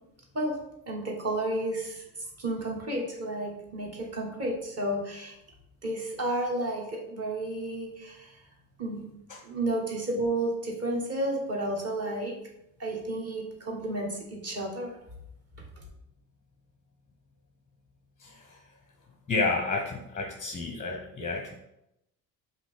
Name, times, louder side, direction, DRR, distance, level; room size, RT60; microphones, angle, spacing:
voice 1, 0.9-2.0 2.4-5.3 5.8-8.4 8.8-9.1 9.4-12.4 12.8-14.9, right 1 dB, 30° right, 0 dB, 1.4 m, -31 dB
voice 2, 18.2-18.6 19.3-21.6, left 3 dB, 15° left, 1 dB, 0.7 m, -31 dB
5.0 x 2.9 x 3.6 m, 0.85 s
figure-of-eight pair, 55°, 50 cm